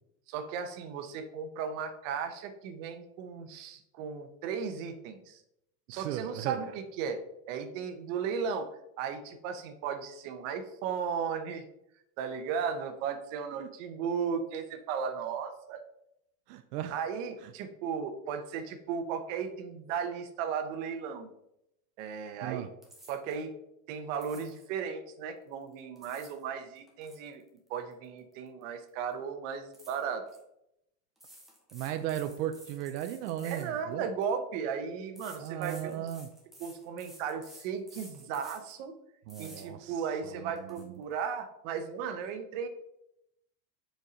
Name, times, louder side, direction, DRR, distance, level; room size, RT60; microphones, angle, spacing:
voice 1, 0.3-5.4 5.9-7.2 7.5-8.7 9.0-11.6 12.2-15.8 16.9-21.3 22.0-22.7 23.1-23.5 23.9-27.4 27.7-30.2 33.4-36.0 36.6-38.9 39.4-42.7, right 6 dB, 55° right, 1.0 m, -35 dB
voice 2, 5.9-6.6 13.6-13.7 16.5-17.0 17.4-17.5 22.4-22.7 31.7-34.0 35.4-36.3 39.3-40.0 40.3-40.9, right 11 dB, 85° right, 0.7 m, -36 dB
sound 1, 22.8-23.4 24.1-24.7 25.7-26.4 26.8-28.6 28.9-29.1 29.7-30.4 31.2-34.3 35.2-38.8 39.3-39.6 40.1-40.2 40.6-40.8, right 1 dB, ahead, 0.3 m, -53 dB
6.8 x 4.6 x 5.1 m
cardioid pair, 180°, 46 cm